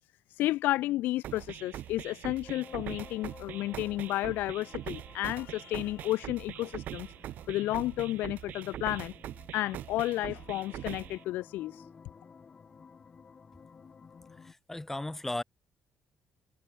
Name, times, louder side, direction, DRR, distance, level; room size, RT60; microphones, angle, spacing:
voice 1, 0.3-7.1 7.5-9.1 9.5-11.9, left 16 dB, 85° left, 0.5 m, -32 dB
sound 1, 1.2-11.2, right 12 dB, 65° right, 0.5 m, -42 dB
sound 2, 2.4-14.5, left 5 dB, 30° left, 1.7 m, -55 dB
voice 2, 14.3-15.4, left 2 dB, 10° left, 2.1 m, -36 dB
cardioid pair, 120°, 3 cm